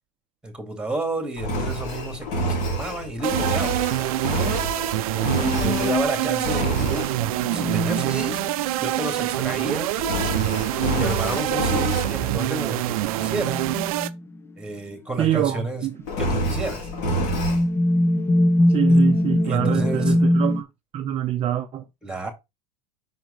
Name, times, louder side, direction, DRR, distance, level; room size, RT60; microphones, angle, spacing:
voice 1, 0.4-3.7 5.6-7.1 7.5-8.4 8.8-9.9 11.0-13.6 14.6-15.9 16.2-16.9 18.9-19.0 19.4-20.2 22.0-22.3, right 2 dB, 5° right, 2.2 m, -31 dB
Engine, 1.4-6.1 6.4-7.2 10.0-12.2 16.0-17.6, right 1 dB, 60° left, 3.7 m, -27 dB
sound 1, 3.2-14.1, right 16 dB, 70° right, 0.5 m, -25 dB
sound 2, 5.2-9.1 11.5-11.6 12.3-12.4 13.2-14.3 15.1-15.6 16.3-20.6, left 1 dB, 10° left, 0.5 m, -23 dB
voice 2, 15.2-15.9 18.7-20.7 20.9-21.8, right 11 dB, 30° right, 0.6 m, -25 dB
6.0 x 4.5 x 4.0 m
hypercardioid pair, 110°, 19 cm